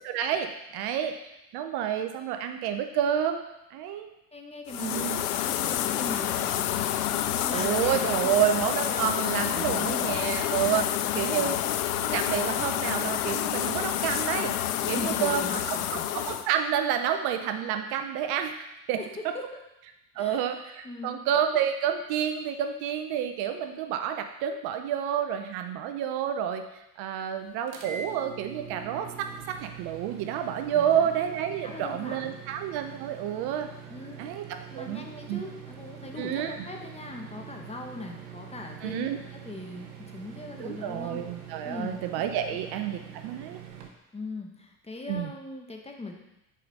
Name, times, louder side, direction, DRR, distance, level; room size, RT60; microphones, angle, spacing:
voice 1, 0.0-1.1 1.5-3.4 3.7-4.1 4.8-5.2 7.5-11.6 12.0-14.5 14.9-18.5 18.9-19.0 20.2-26.6 27.0-33.7 34.2-35.4 36.2-36.6 38.8-39.2 40.6-43.6 45.1-45.3, right 9 dB, 60° right, 7 dB, 0.8 m, -29 dB
voice 2, 4.3-6.8 7.2-8.3 9.5-10.2 11.0-11.6 14.8-16.1 18.9-19.4 20.1-21.2 30.7-31.1 31.6-32.4 33.9-34.3 34.7-41.2 41.6-42.0 42.5-42.6 44.1-46.1, left 3 dB, 15° left, 2 dB, 1.2 m, -40 dB
sound 1, 4.7-16.5, left 11 dB, 80° left, 0.6 m, -28 dB
sound 2, 27.7-43.9, right 8 dB, 85° right, 1.1 m, -44 dB
5.7 x 4.9 x 5.4 m, 0.90 s
hypercardioid pair, 80°, 44 cm